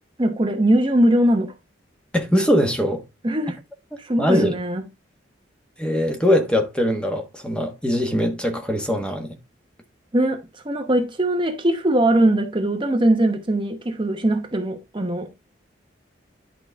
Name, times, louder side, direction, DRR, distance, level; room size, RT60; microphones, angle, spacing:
voice 1, 0.2-1.5 3.2-3.6 4.0-4.8 10.1-15.3, right 1 dB, 25° right, 0.9 m, -21 dB
voice 2, 2.1-3.0 4.2-4.5 5.8-9.3, equal, 5° left, 1.3 m, -21 dB
10.5 x 4.9 x 3.5 m
head